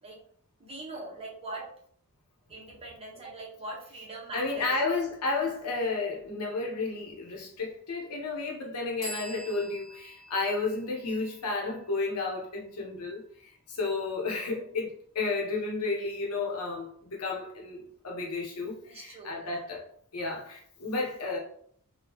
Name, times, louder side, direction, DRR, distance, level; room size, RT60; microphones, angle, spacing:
voice 1, 0.6-1.7 2.5-4.7 18.8-19.6, right 2 dB, 25° right, -3 dB, 0.8 m, -42 dB
voice 2, 4.3-19.8 20.1-21.4, left 3 dB, 85° left, 0 dB, 0.9 m, -32 dB
sound 1, 9.0-12.6, equal, 5° left, 0.9 m, -46 dB
3.5 x 2.2 x 2.9 m, 0.63 s
head